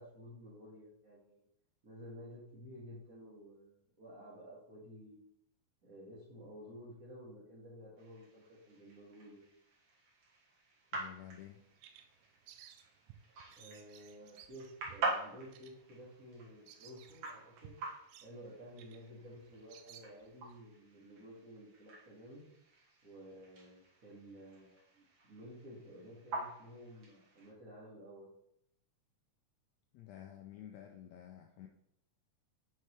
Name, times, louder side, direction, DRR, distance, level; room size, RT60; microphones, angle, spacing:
voice 1, 0.0-1.4 1.8-5.3 5.8-9.4 13.6-17.7 18.2-22.4 23.0-28.3, equal, 35° right, -9 dB, 1.7 m, -53 dB
sound 1, 8.0-27.5, right 3 dB, 65° right, 2.8 m, -46 dB
voice 2, 10.9-11.6 29.9-31.7, left 11 dB, 85° left, 4 dB, 1.5 m, -51 dB
Bird vocalization bird call bird song, 11.4-20.6, right 10 dB, 80° right, 2.1 m, -60 dB
7.6 x 5.8 x 3.2 m, 0.74 s
omnidirectional pair, 3.7 m